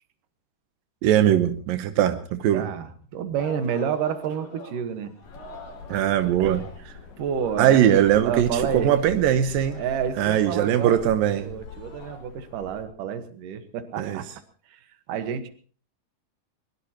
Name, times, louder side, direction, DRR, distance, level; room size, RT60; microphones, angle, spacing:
voice 1, 1.0-2.7 5.9-6.7 7.6-9.8 10.2-11.5 14.0-14.2, right 10 dB, 90° right, 8 dB, 2.7 m, -21 dB
voice 2, 2.5-5.1 6.4-6.5 7.2-8.9 9.8-11.0 11.4-14.3 14.7-14.8 15.1-15.5, right 8 dB, 75° right, 9 dB, 3.0 m, -29 dB
Singing, 3.4-7.0 7.3-12.2, left 2 dB, 75° left, 5.9 m, -46 dB
sound 1, 5.2-12.9, left 4 dB, 50° left, 2.6 m, -42 dB
22.5 x 21.5 x 2.9 m, 0.42 s
omnidirectional pair, 3.9 m